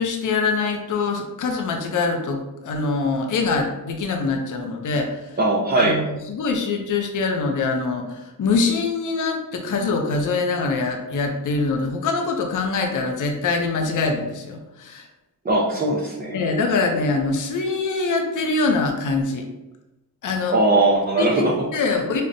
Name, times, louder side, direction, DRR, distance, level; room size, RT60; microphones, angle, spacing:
voice 1, 0.0-5.4 5.8-15.1 16.3-19.5 20.2-20.5 21.2-21.4 21.7-22.2, left 4 dB, 50° left, 3 dB, 0.6 m, -24 dB
voice 2, 5.4-6.0 15.4-16.4 20.5-21.6, right 2 dB, 25° right, -4 dB, 0.5 m, -19 dB
5.0 x 2.1 x 2.6 m, 0.98 s
cardioid pair, 80°, 41 cm